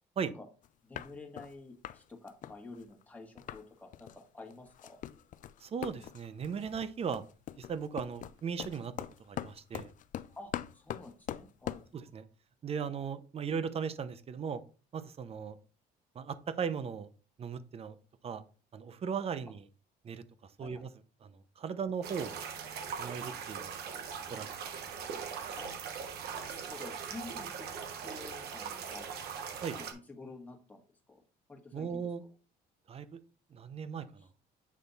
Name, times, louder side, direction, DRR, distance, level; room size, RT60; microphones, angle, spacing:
sound 1, 0.6-0.7 0.9-1.5 1.8-2.0 2.3-3.6 3.9-4.2 4.5-11.9, left 11 dB, 50° left, 0.4 m, -42 dB
voice 1, 0.8-5.0 10.4-11.9 20.6-20.9 25.6-25.8 26.3-29.1 29.7-30.8 31.1-31.2 31.5-32.1 34.2-34.3, left 3 dB, 10° left, 0 dB, 1.8 m, -50 dB
voice 2, 5.6-7.2 7.6-8.9 9.3-9.9 11.9-12.2 12.6-14.6 14.9-15.6 16.1-17.1 17.4-18.0 18.2-18.4 18.7-19.6 20.0-20.2 20.6-20.9 21.2-21.3 21.6-22.4 23.0-23.7 24.3-24.5 29.6-29.8 31.7-32.2 32.9-33.2 33.5-34.3, right 6 dB, 35° right, 13 dB, 0.7 m, -37 dB
sound 2, 22.0-29.9, right 7 dB, 70° right, 1.2 m, -41 dB
8.4 x 3.3 x 4.0 m, 0.36 s
cardioid pair, 110°, 17 cm